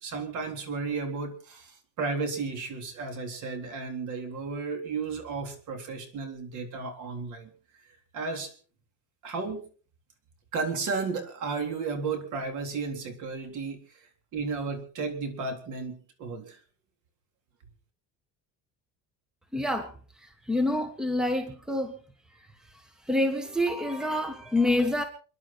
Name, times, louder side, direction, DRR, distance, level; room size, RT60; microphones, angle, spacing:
voice 1, 0.0-7.5 8.1-8.5 9.2-9.6 10.5-16.6, right 4 dB, 55° right, 6 dB, 3.8 m, -33 dB
voice 2, 19.5-19.9 20.5-22.0 23.1-25.0, left 1 dB, ahead, 8 dB, 1.5 m, -27 dB
28.5 x 11.0 x 4.3 m, 0.41 s
cardioid pair, 155°, 37 cm